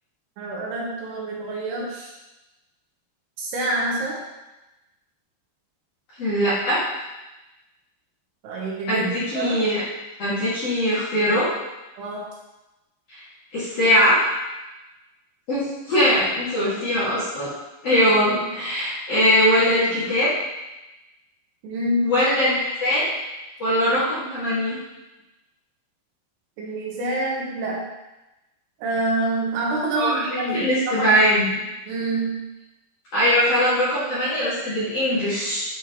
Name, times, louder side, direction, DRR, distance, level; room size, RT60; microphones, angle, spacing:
voice 1, 0.4-2.1 3.4-4.2 8.4-9.6 12.0-12.3 17.9-18.0 18.3-18.4 21.6-22.1 26.6-27.8 28.8-31.2 31.9-32.5, right 1 dB, 75° right, -3 dB, 3.0 m, -27 dB
voice 2, 6.2-6.8 8.9-9.8 10.2-11.5 13.1-13.2 13.5-14.2 15.5-17.5 17.8-20.3 22.0-23.1 23.6-24.8 29.9-30.2 30.5-31.4 33.1-35.6, equal, 45° left, -11 dB, 2.4 m, -21 dB
10.0 x 4.5 x 3.0 m, 1.0 s
omnidirectional pair, 5.0 m